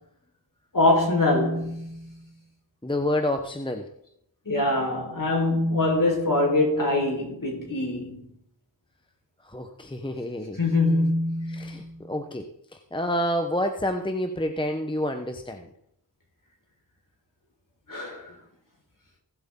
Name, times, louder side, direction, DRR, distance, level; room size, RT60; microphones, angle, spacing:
voice 1, 0.7-2.2 4.4-8.3 10.6-12.1 17.9-18.3, left 2 dB, 45° left, 4.6 m, -24 dB
voice 2, 2.8-3.9 9.4-10.6 11.5-15.7, left 1 dB, 10° left, 1.0 m, -29 dB
19.5 x 7.8 x 3.8 m
wide cardioid pair, 65°, 44 cm